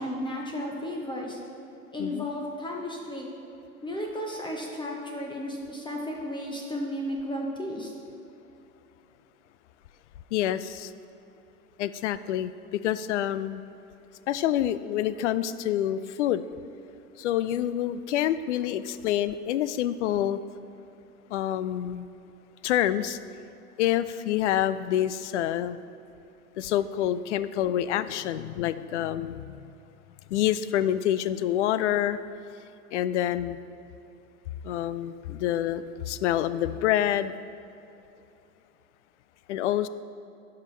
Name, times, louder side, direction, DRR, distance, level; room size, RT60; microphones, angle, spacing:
voice 1, 0.0-1.4 1.9-3.3 3.8-7.9, left 1 dB, 10° left, -1 dB, 1.0 m, -33 dB
voice 2, 10.3-10.9 11.8-13.6 14.3-16.4 17.2-20.4 21.3-22.0 22.6-23.2 23.8-25.8 26.6-29.7 30.3-32.2 32.9-33.6 34.6-37.3 39.5-39.9, left 11 dB, 50° left, 14 dB, 0.5 m, -27 dB
16.0 x 5.8 x 3.3 m, 2.8 s
figure-of-eight pair, 90°, 45 cm